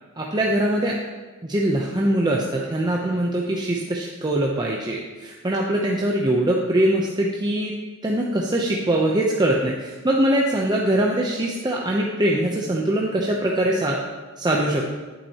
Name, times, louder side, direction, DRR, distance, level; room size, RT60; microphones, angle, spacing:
voice 1, 0.2-1.0 1.4-7.7 8.0-14.0 14.4-15.0, right 1 dB, 20° right, -2 dB, 0.6 m, -22 dB
9.9 x 8.6 x 2.8 m, 1.3 s
head